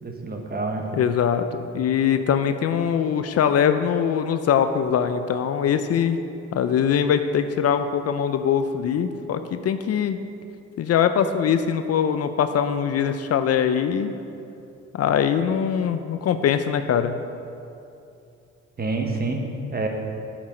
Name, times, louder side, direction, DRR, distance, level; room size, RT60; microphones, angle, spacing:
voice 1, 0.0-0.8 18.8-19.4 19.7-19.9, right 3 dB, 30° right, 2 dB, 1.2 m, -27 dB
voice 2, 0.9-6.2 6.5-10.2 10.8-14.1 14.9-17.2, left 8 dB, 55° left, 9 dB, 0.5 m, -22 dB
8.3 x 6.1 x 4.9 m, 2.6 s
cardioid pair, 90°, 30 cm